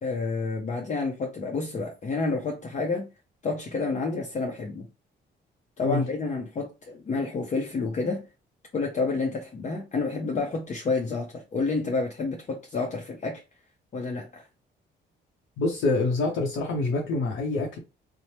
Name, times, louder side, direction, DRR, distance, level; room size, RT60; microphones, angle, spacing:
voice 1, 0.0-3.1 3.4-4.9 5.8-8.2 8.7-13.4 13.9-14.5, left 3 dB, 40° left, 0.6 m, -29 dB
voice 2, 15.6-17.8, left 3 dB, 85° left, 0.7 m, -26 dB
2.9 x 2.0 x 3.1 m
cardioid pair, 90°, 20 cm